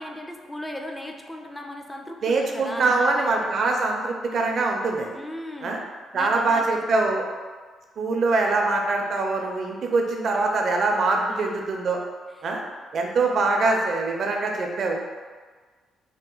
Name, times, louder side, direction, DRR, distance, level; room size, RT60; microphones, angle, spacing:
voice 1, 0.0-3.5 5.1-5.8 6.1-7.2 11.2-11.7 12.4-12.5, left 1 dB, 10° left, 3 dB, 0.4 m, -37 dB
voice 2, 2.2-5.2 5.6-5.8 6.1-7.2 8.0-12.0 12.4-12.6 12.9-15.0, right 3 dB, 55° right, 1 dB, 0.5 m, -23 dB
2.9 x 2.1 x 3.8 m, 1.5 s
cardioid pair, 90°, 0 cm